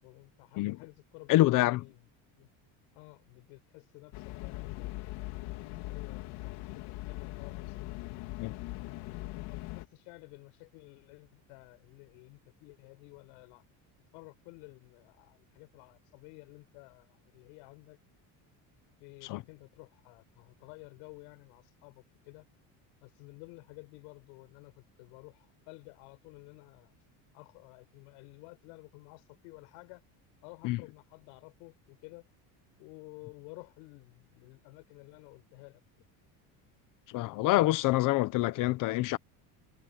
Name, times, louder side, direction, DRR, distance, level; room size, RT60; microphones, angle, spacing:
voice 1, 0.0-2.1 2.4-2.5 2.9-5.2 5.8-7.8 8.6-13.6 14.1-18.0 19.0-22.4 23.0-27.0 27.3-30.0 30.4-32.3 32.8-35.8, left 31 dB, 90° left, 7.9 m, -53 dB
voice 2, 1.3-1.8 8.4-8.5 19.3-19.4 30.6-30.8 37.1-39.2, left 17 dB, 50° left, 0.9 m, -26 dB
sound 1, 4.1-9.9, left 19 dB, 70° left, 3.3 m, -40 dB
cardioid pair, 170°, 41 cm